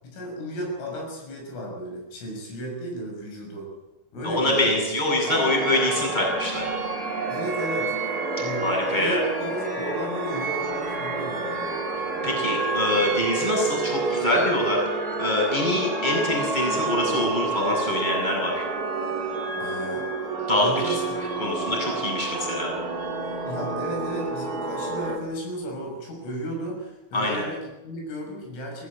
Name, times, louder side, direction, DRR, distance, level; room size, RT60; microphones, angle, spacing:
voice 1, 0.0-3.7 4.1-4.8 7.3-7.9 8.4-11.8 19.6-20.1 20.6-21.2 23.5-28.9, equal, 80° left, 1 dB, 9.2 m, -34 dB
voice 2, 4.2-6.8 8.6-9.2 12.0-14.8 15.2-18.7 20.5-21.0 21.4-22.7 27.1-27.4, left 1 dB, 10° left, -1 dB, 7.7 m, -25 dB
sound 1, 5.3-25.2, right 3 dB, 25° right, 2.4 m, -29 dB
23.5 x 17.0 x 8.9 m, 0.98 s
omnidirectional pair, 5.7 m